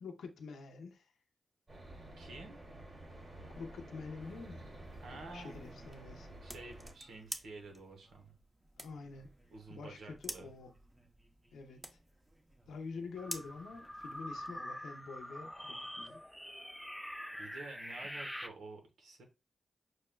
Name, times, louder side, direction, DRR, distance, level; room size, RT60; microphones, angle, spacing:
voice 1, 0.0-1.1 3.6-4.7 5.3-6.3 8.8-9.4 9.7-10.7 11.5-12.0 12.7-16.2, left 4 dB, 90° left, 0.6 m, -47 dB
sound 1, 1.7-6.9, right 1 dB, 50° right, 2.1 m, -51 dB
voice 2, 2.2-2.6 5.0-5.8 6.4-8.3 9.5-10.5 17.3-19.2, right 3 dB, 85° right, 0.9 m, -50 dB
sound 2, 4.2-14.6, right 1 dB, 20° right, 0.7 m, -51 dB
sound 3, 13.2-18.5, equal, ahead, 0.4 m, -45 dB
6.3 x 2.1 x 2.2 m
supercardioid pair, 40°, 0 cm